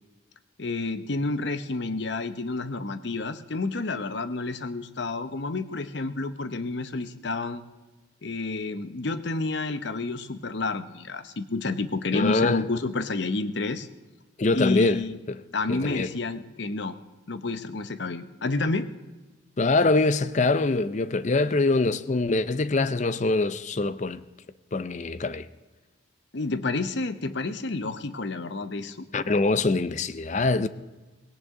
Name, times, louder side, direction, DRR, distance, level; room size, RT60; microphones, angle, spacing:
voice 1, 0.6-7.6 8.2-13.9 14.5-15.2 15.5-16.9 17.3-18.9 26.3-29.1, left 3 dB, 60° left, 0.8 m, -30 dB
voice 2, 12.1-12.6 14.4-15.0 15.3-15.4 15.7-16.1 19.6-24.2 24.7-25.5 29.1-30.7, left 3 dB, 35° left, 0.5 m, -24 dB
18.0 x 17.0 x 3.7 m
head